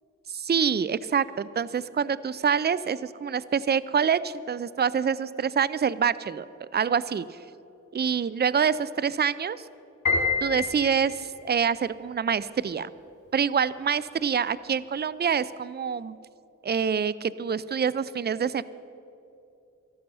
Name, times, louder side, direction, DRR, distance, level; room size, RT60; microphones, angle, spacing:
voice 1, 0.3-7.3 7.9-9.6 10.4-12.9 13.3-16.2 16.6-18.6, right 7 dB, 35° right, 18 dB, 0.4 m, -26 dB
Piano, 10.1-11.4, left 4 dB, 70° left, 3.3 m, -26 dB
13.5 x 12.0 x 5.6 m, 2.8 s
cardioid pair, 45°, 32 cm